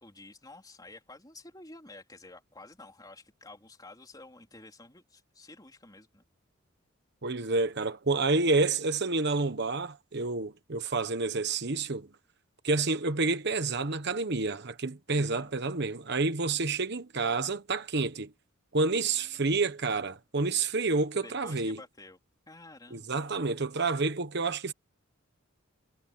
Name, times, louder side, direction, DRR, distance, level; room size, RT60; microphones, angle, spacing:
voice 1, 0.0-6.3 15.1-15.5 18.9-19.7 21.2-22.2 22.5-23.5, left 2 dB, 20° left, 3.9 m, -51 dB
voice 2, 7.2-12.1 12.6-18.3 18.7-21.8 22.9-24.7, right 3 dB, 55° right, 1.2 m, -29 dB
head